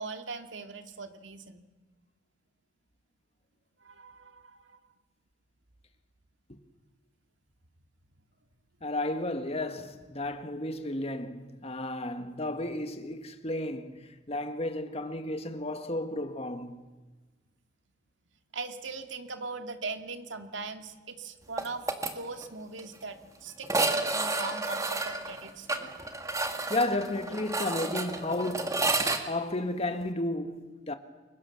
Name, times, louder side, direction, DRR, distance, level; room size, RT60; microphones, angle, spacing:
voice 1, 0.0-1.7 3.8-4.8 18.5-25.9, right 4 dB, 75° right, 2.3 m, -40 dB
voice 2, 8.8-16.9 25.8-26.0 26.7-28.9 29.3-30.9, left 1 dB, 35° left, 1.7 m, -33 dB
sound 1, 21.6-22.1 22.4-22.5 22.8-22.9 23.6-29.2, right 2 dB, 15° right, 2.0 m, -30 dB
29.0 x 23.5 x 7.2 m
head